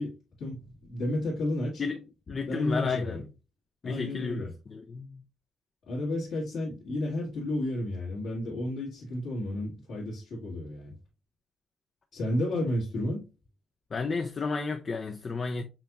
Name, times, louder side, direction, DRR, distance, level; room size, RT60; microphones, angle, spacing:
voice 1, 0.0-1.8 2.5-3.2 3.8-4.5 5.9-10.9 12.1-13.2, left 1 dB, 70° left, 1.7 m, -32 dB
voice 2, 2.3-3.2 3.8-5.2 13.9-15.6, left 4 dB, 40° left, 0.5 m, -32 dB
5.5 x 2.9 x 2.3 m
cardioid pair, 90°, 0 cm